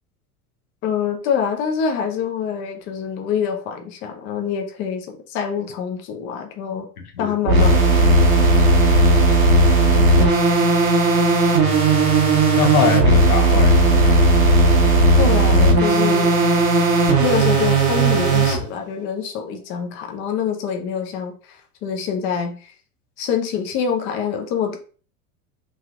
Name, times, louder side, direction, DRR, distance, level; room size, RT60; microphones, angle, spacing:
voice 1, 0.8-6.9 7.2-8.3 10.0-10.3 15.2-16.3 17.2-22.7 23.2-24.8, left 7 dB, 30° left, 4 dB, 0.5 m, -25 dB
sound 1, 7.5-18.6, right 2 dB, 65° right, 1.0 m, -15 dB
voice 2, 9.7-10.2 12.6-14.3, left 6 dB, 75° left, 4 dB, 0.8 m, -23 dB
3.0 x 2.8 x 2.3 m, 0.38 s
figure-of-eight pair, 75°, 45 cm